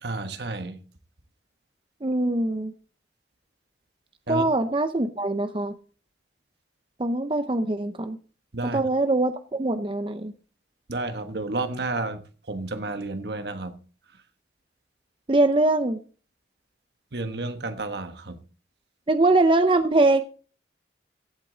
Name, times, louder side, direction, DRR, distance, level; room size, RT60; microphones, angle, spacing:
voice 1, 0.0-0.8 4.3-4.5 8.5-8.8 10.9-12.2 12.5-13.7 17.1-18.4, right 2 dB, 65° right, 1.3 m, -31 dB
voice 2, 2.0-2.7 4.3-5.7 7.0-8.2 8.6-10.3 15.3-16.0 19.1-20.2, right 2 dB, 30° right, 0.6 m, -22 dB
15.5 x 8.2 x 3.9 m
head